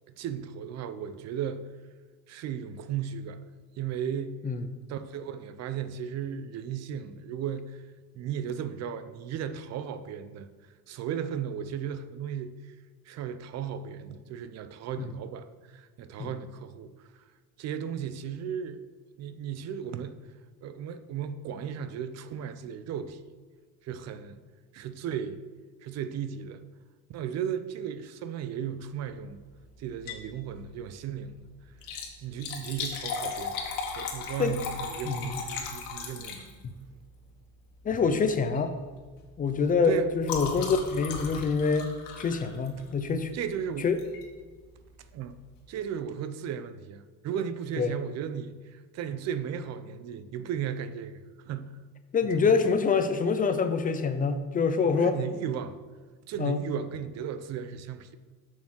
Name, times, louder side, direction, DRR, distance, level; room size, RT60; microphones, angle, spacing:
voice 1, 0.1-1.7 2.3-3.4 3.8-4.4 4.9-7.8 8.1-10.5 10.9-12.7 13.1-16.9 17.6-18.8 19.2-20.2 20.6-23.2 23.8-24.4 24.7-25.4 25.8-26.6 27.1-29.4 29.8-31.4 32.2-33.6 34.0-36.5 39.9-40.1 43.3-43.9 45.1-45.4 45.7-51.8 52.4-52.6 55.0-55.8 56.2-58.2, right 8 dB, 50° right, 0.6 m, -35 dB
voice 2, 4.4-4.8 15.0-15.1 16.2-16.3 34.4-34.6 35.1-35.4 36.6-36.7 37.8-38.7 39.4-41.9 42.2-43.3 43.8-44.0 47.8-47.9 52.1-55.1 56.4-56.6, left 5 dB, 25° left, 0.5 m, -26 dB
Liquid, 29.9-30.3 30.7-30.8 31.7-36.8 37.8-38.1 38.4-38.7 39.0-43.0 44.0-44.2 44.8-44.9 45.1-45.2, left 5 dB, 90° left, 1.9 m, -37 dB
7.1 x 6.4 x 6.3 m
cardioid pair, 140°, 33 cm